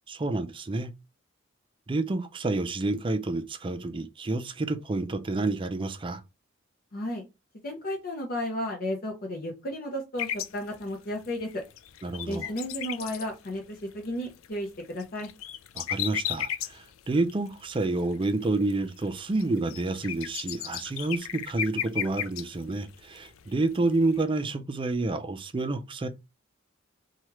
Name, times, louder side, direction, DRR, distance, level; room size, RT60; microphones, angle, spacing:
voice 1, 0.1-0.9 1.9-6.2 12.0-12.5 15.8-26.1, right 2 dB, 25° right, 0.4 m, -29 dB
voice 2, 6.9-7.2 7.6-11.6 12.3-15.3, left 1 dB, 45° left, 0.7 m, -33 dB
sound 1, 10.2-24.2, left 10 dB, 75° left, 0.3 m, -35 dB
3.1 x 2.3 x 2.9 m
head